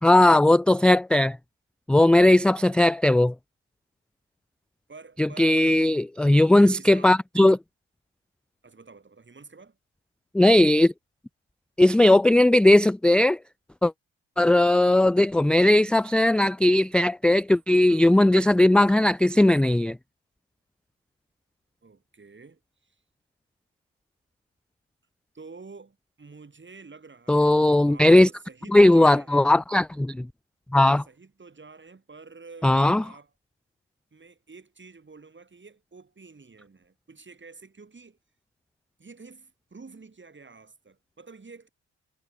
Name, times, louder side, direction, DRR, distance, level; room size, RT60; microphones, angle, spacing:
voice 1, 0.0-1.4 1.9-3.3 5.2-7.6 10.3-10.9 11.8-13.4 13.8-13.9 14.4-20.0 27.3-28.3 28.7-30.3 30.7-31.0 32.6-33.0, left 1 dB, 5° left, 0.3 m, -18 dB
voice 2, 4.9-5.9 6.3-7.1 8.6-9.8 17.8-18.6 21.8-23.0 25.3-29.5 30.8-33.3 34.1-38.2 39.0-41.7, right 4 dB, 30° right, 4.5 m, -49 dB
hypercardioid pair, 45°, 35 cm